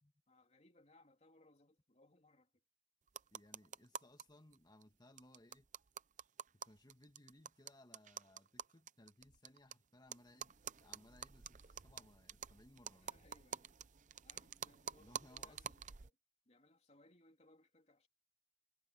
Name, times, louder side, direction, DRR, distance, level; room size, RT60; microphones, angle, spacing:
voice 1, 0.3-2.5 13.0-13.7 14.2-16.1 16.4-18.1, left 2 dB, 40° left, 3.4 m, -68 dB
sound 1, 3.1-4.2 4.5-4.6 4.8-4.9 5.2-9.7 10.1-16.1, right 8 dB, 45° right, 0.7 m, -49 dB
voice 2, 3.3-5.7 6.5-13.1 15.0-15.7, left 1 dB, 25° left, 1.8 m, -64 dB
head